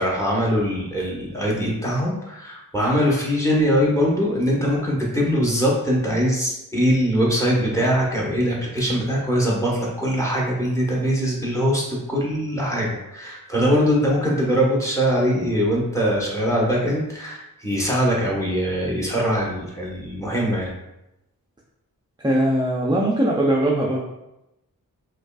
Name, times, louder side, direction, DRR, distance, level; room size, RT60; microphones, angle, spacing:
voice 1, 0.0-20.7, equal, 10° left, -4 dB, 1.0 m, -22 dB
voice 2, 22.2-24.0, right 1 dB, 15° right, -3 dB, 0.4 m, -20 dB
5.1 x 2.3 x 2.3 m, 0.91 s
wide cardioid pair, 75°, 36 cm